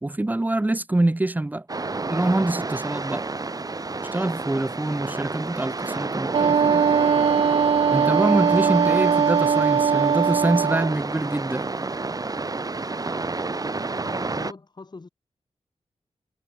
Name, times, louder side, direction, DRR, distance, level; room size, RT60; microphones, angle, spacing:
voice 1, 0.0-1.7 2.1-3.3 4.1-6.9 7.9-11.7, right 2 dB, 15° right, 1.0 m, -25 dB
sound 1, 1.7-14.5, right 3 dB, 35° right, 2.6 m, -30 dB
Wind instrument woodwind instrument, 6.3-11.0, right 7 dB, 65° right, 0.6 m, -20 dB
voice 2, 14.0-15.1, left 3 dB, 40° left, 6.7 m, -41 dB
wide cardioid pair, 115°, 11 cm